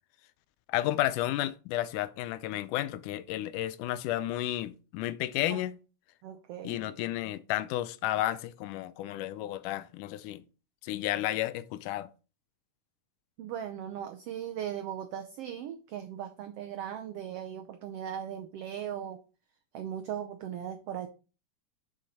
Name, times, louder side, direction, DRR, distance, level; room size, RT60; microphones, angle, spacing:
voice 1, 0.7-5.8 6.6-10.4 10.8-12.1, left 14 dB, 85° left, 2.1 m, -32 dB
voice 2, 6.2-6.8 13.4-19.2 19.7-21.1, right 9 dB, 85° right, 1.3 m, -38 dB
6.6 x 6.4 x 4.1 m
omnidirectional pair, 3.6 m